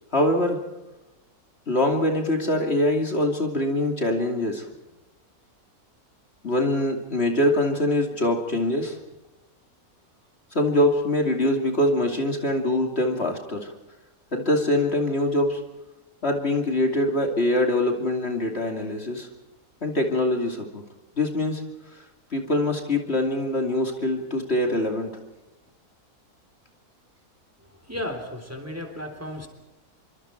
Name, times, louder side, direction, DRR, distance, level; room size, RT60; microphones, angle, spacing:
voice 1, 0.1-0.6 1.7-4.6 6.4-9.0 10.5-13.7 14.3-15.6 16.2-19.3 19.8-20.8 21.2-21.6 21.9-22.0 22.3-25.1, left 1 dB, 40° left, 2 dB, 2.9 m, -23 dB
voice 2, 27.9-29.5, left 1 dB, 10° right, 5 dB, 3.4 m, -34 dB
27.5 x 24.5 x 4.6 m, 1.0 s
omnidirectional pair, 1.6 m